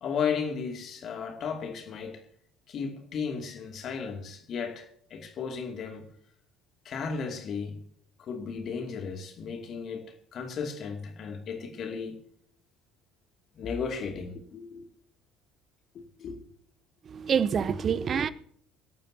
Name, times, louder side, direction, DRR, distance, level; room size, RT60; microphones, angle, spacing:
voice 1, 0.0-2.2 2.7-6.1 6.8-7.8 8.2-12.1 13.6-14.9 16.2-16.4, left 6 dB, 45° left, 2.5 m, -34 dB
voice 2, 17.1-18.3, right 7 dB, 35° right, 0.7 m, -26 dB
24.5 x 12.0 x 2.9 m
figure-of-eight pair, 55°, 0 cm